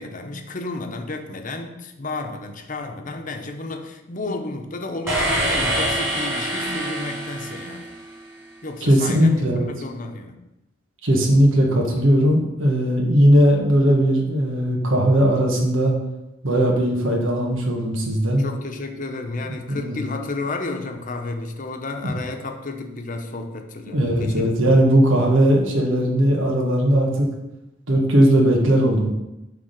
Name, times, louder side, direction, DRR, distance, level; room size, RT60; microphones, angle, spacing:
voice 1, 0.0-7.9 8.6-10.4 18.4-24.5 24.9-25.0, left 2 dB, 40° left, 4 dB, 0.9 m, -32 dB
sound 1, 5.1-8.2, right 1 dB, 15° right, 3.1 m, -25 dB
voice 2, 8.8-9.7 11.0-15.9 16.4-18.4 19.7-20.0 23.9-27.3 27.9-29.1, equal, 85° right, -1 dB, 1.5 m, -18 dB
9.4 x 3.7 x 6.6 m, 0.95 s
head